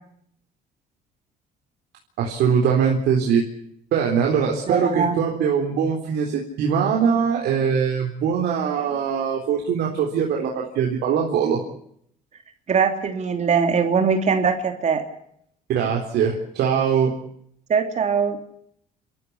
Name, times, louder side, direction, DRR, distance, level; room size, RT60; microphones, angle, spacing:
voice 1, 2.2-3.4 3.9-11.6 15.7-17.1, right 7 dB, 75° right, 0 dB, 4.0 m, -22 dB
voice 2, 4.7-5.2 12.7-15.0 17.7-18.4, right 6 dB, 45° right, 6 dB, 3.0 m, -21 dB
29.5 x 14.5 x 8.3 m, 0.69 s
cardioid pair, 110°, 17 cm